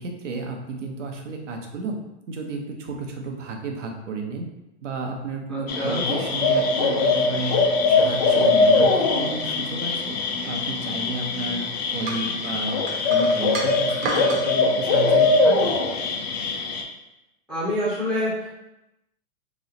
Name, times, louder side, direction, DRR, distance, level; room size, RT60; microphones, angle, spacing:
voice 1, 0.0-2.0 2.3-4.5 4.8-10.2 10.4-11.6 11.9-12.8 13.1-15.8, right 3 dB, 85° right, 2 dB, 0.8 m, -32 dB
voice 2, 5.5-6.0 17.5-18.5, equal, ahead, -12 dB, 0.9 m, -26 dB
sound 1, 5.7-16.8, left 3 dB, 35° left, 0.4 m, -22 dB
sound 2, 12.1-14.5, right 3 dB, 45° right, 0.8 m, -31 dB
3.0 x 2.0 x 3.8 m, 0.93 s
hypercardioid pair, 145°, 36 cm